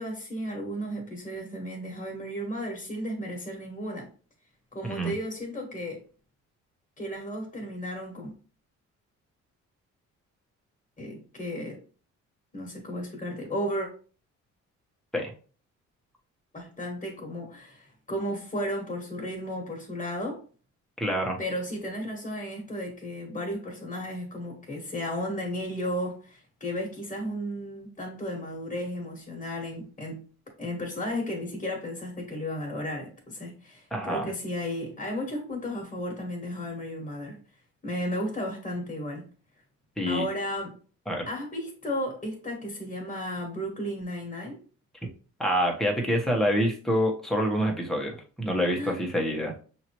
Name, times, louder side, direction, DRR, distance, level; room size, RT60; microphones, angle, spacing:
voice 1, 0.0-4.1 4.7-6.0 7.0-8.3 11.0-11.8 12.5-13.9 16.5-20.4 21.4-30.2 30.6-37.4 37.8-39.3 40.1-40.7 41.3-44.6 48.7-49.0, equal, 25° left, 0 dB, 1.6 m, -34 dB
voice 2, 21.0-21.4 33.9-34.3 40.0-40.3 41.1-41.3 45.0-45.1 45.4-49.5, equal, ahead, 0 dB, 1.2 m, -26 dB
5.7 x 2.8 x 3.0 m, 0.39 s
cardioid pair, 90°, 30 cm